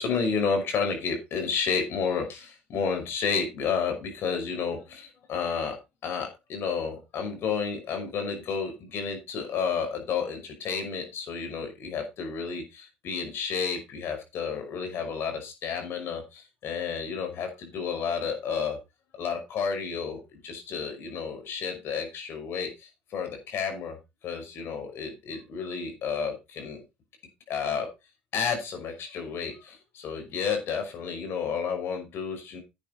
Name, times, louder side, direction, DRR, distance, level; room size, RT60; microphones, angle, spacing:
voice 1, 0.0-5.8 6.0-18.8 19.1-24.0 24.2-26.8 27.5-27.9 28.3-32.6, left 6 dB, 55° left, 4 dB, 5.4 m, -31 dB
11.5 x 9.0 x 4.1 m, 0.26 s
hypercardioid pair, 70°, 5 cm